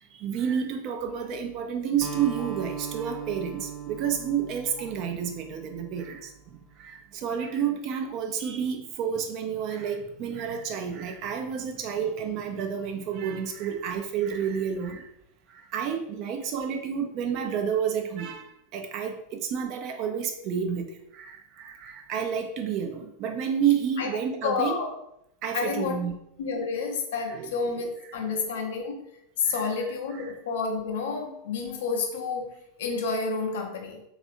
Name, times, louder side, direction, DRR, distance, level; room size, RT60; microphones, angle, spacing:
voice 1, 0.1-15.1 15.5-20.9 21.1-24.8 25.4-26.1 27.3-27.8 29.4-29.6 30.2-30.3, right 8 dB, 45° right, 4 dB, 0.4 m, -30 dB
Acoustic guitar, 2.0-6.5, right 8 dB, 10° left, 0.8 m, -38 dB
voice 2, 24.0-24.9 25.5-26.0 26.4-29.0 29.4-34.0, left 4 dB, 60° left, 3 dB, 0.6 m, -30 dB
3.2 x 2.4 x 2.6 m, 0.79 s
figure-of-eight pair, 85°, 0 cm